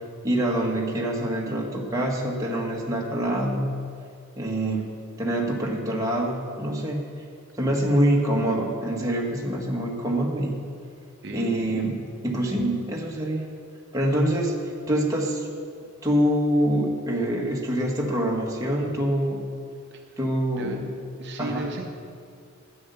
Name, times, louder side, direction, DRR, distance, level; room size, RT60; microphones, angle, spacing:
voice 1, 0.2-3.7 4.4-4.9 5.2-7.0 7.6-10.6 11.3-13.5 13.9-14.5 14.9-15.5 16.0-19.4 20.2-20.9 21.4-21.7, right 1 dB, 15° right, -2 dB, 1.4 m, -25 dB
voice 2, 11.2-11.6 19.9-20.1 20.5-20.8 21.2-21.9, right 2 dB, 55° right, 2 dB, 0.8 m, -35 dB
9.7 x 8.9 x 6.8 m, 2.3 s
head